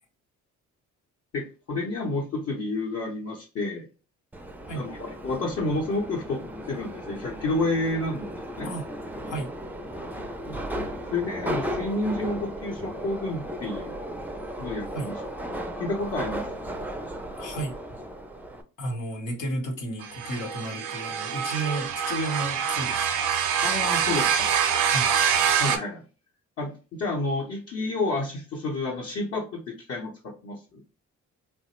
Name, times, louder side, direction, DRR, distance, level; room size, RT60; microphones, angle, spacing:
voice 1, 1.3-3.9 4.7-6.4 6.7-8.7 10.5-10.6 11.1-14.0 14.6-15.2 15.8-16.7 23.6-24.5 25.6-26.0 26.6-26.7 27.0-30.8, left 2 dB, 55° left, -2 dB, 0.8 m, -30 dB
Subway metro underground, 4.3-18.6, equal, 5° right, 0.3 m, -35 dB
voice 2, 9.2-9.5 14.9-15.1 17.4-17.8 18.8-23.1 24.9-25.1, right 1 dB, 85° left, 1 dB, 1.0 m, -32 dB
sound 1, 20.0-25.8, right 8 dB, 90° right, 0.5 m, -25 dB
3.1 x 2.0 x 2.9 m, 0.34 s
cardioid pair, 90°, 30 cm